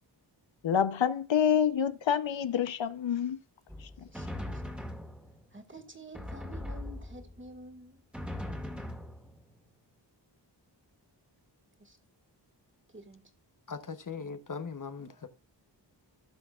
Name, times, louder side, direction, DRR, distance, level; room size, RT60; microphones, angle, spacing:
voice 1, 0.6-3.4, left 8 dB, 85° left, 0.8 m, -27 dB
Drum, 3.7-5.6 6.1-7.5 8.1-9.7, left 1 dB, ahead, 1.8 m, -40 dB
voice 2, 4.0-4.6 5.5-8.0 11.8-12.0 12.9-13.3, right 1 dB, 25° right, 1.9 m, -49 dB
voice 3, 13.7-15.3, left 5 dB, 45° left, 1.0 m, -39 dB
17.0 x 6.0 x 2.4 m
wide cardioid pair, 105°, 44 cm